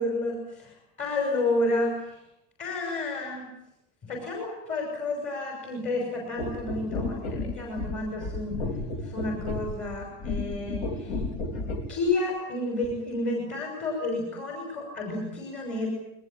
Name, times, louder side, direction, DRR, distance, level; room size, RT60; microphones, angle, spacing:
voice 1, 0.0-2.1 2.6-3.5 4.0-8.6 9.0-11.2 11.9-15.9, left 2 dB, 35° left, 1 dB, 6.2 m, -30 dB
sound 1, 6.4-12.0 12.8-13.0, left 2 dB, 75° left, 3.8 m, -33 dB
21.5 x 21.0 x 9.0 m, 0.84 s
cardioid pair, 180°, 21 cm